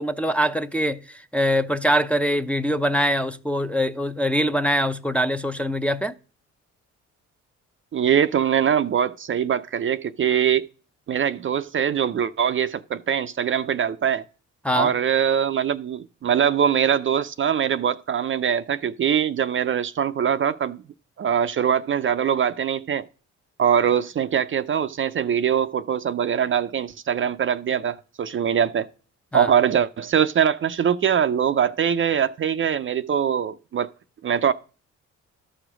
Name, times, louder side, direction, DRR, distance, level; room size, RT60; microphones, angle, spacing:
voice 1, 0.0-6.1 14.6-14.9 29.3-29.5, equal, 5° left, 0.6 m, -23 dB
voice 2, 7.9-10.7 11.1-14.2 14.7-20.8 21.2-23.0 23.6-28.9 29.3-33.9 34.2-34.5, right 8 dB, 40° right, 0.5 m, -22 dB
12.5 x 5.0 x 6.1 m
cardioid pair, 90°, 30 cm